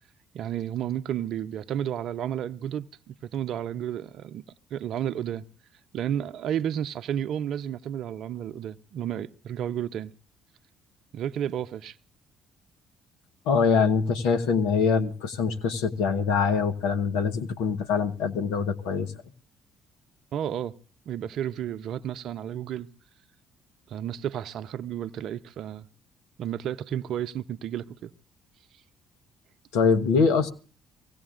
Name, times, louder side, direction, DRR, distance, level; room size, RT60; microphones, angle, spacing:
voice 1, 0.3-4.4 4.7-5.4 5.9-10.1 11.1-12.0 20.3-20.7 21.1-22.9 23.9-25.9 26.4-28.1, right 10 dB, 65° right, 0.6 m, -32 dB
voice 2, 13.5-19.1 29.7-30.5, left 5 dB, 80° left, 1.1 m, -24 dB
24.0 x 17.0 x 2.5 m
hypercardioid pair, 55°, 0 cm